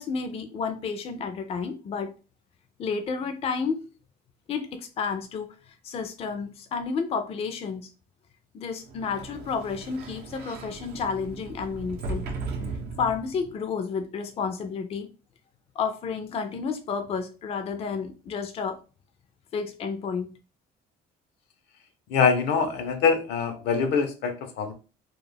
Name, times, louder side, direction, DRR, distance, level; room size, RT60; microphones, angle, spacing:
voice 1, 0.0-2.1 2.8-3.9 4.5-7.9 8.5-12.3 13.0-15.1 15.8-18.8 19.5-20.3, left 5 dB, 35° left, 0.4 m, -31 dB
Sliding door, 8.8-13.6, right 3 dB, 75° right, 0.6 m, -37 dB
voice 2, 22.1-24.7, left 6 dB, 80° left, 0.6 m, -24 dB
2.3 x 2.0 x 3.2 m
cardioid pair, 110°, 17 cm